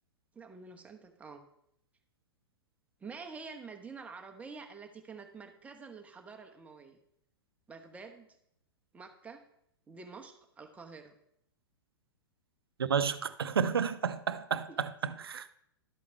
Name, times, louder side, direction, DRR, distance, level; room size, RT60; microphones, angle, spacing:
voice 1, 0.3-1.4 3.0-7.0 7.7-8.3 8.9-9.4 9.9-11.1 14.7-14.8, right 4 dB, 10° right, 1.1 m, -48 dB
voice 2, 12.8-15.5, right 6 dB, 65° right, 0.6 m, -31 dB
12.0 x 8.4 x 3.3 m
figure-of-eight pair, 105°, 13 cm